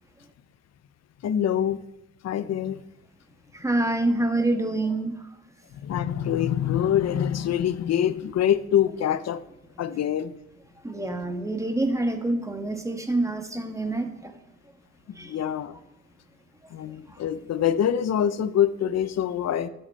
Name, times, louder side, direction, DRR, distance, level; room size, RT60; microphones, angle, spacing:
voice 1, 1.2-1.8 2.2-2.8 5.8-9.4 9.8-10.3 15.2-15.8 16.7-19.7, left 10 dB, 60° left, 15 dB, 0.7 m, -25 dB
voice 2, 3.5-5.2 10.8-14.3 15.1-15.3, right 2 dB, 10° right, 6 dB, 1.5 m, -26 dB
12.5 x 8.4 x 4.2 m, 0.84 s
cardioid pair, 90°, 30 cm